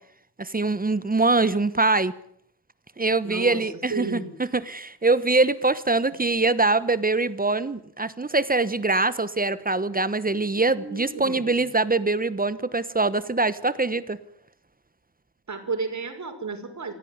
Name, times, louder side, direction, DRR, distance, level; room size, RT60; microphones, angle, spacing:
voice 1, 0.4-2.1 3.0-14.2, right 3 dB, 20° right, 15 dB, 1.2 m, -23 dB
voice 2, 3.2-3.6 3.9-4.3 10.7-11.6 15.5-16.9, right 4 dB, 45° right, 5 dB, 6.0 m, -32 dB
26.0 x 16.5 x 9.6 m, 0.67 s
wide cardioid pair, 115°, 39 cm